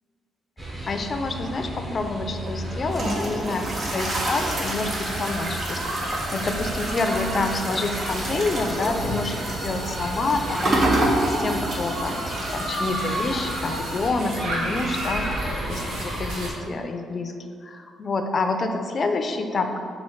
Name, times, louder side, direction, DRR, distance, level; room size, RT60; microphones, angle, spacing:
sound 1, 0.6-16.5, right 1 dB, 20° right, 1.4 m, -35 dB
voice 1, 0.9-19.8, left 3 dB, 45° left, 6 dB, 0.5 m, -28 dB
sound 2, 2.4-14.1, right 1 dB, 45° right, 1.0 m, -28 dB
sound 3, 4.1-16.5, right 1 dB, 80° right, 1.2 m, -34 dB
4.4 x 4.2 x 5.6 m, 2.2 s
cardioid pair, 90°, 0 cm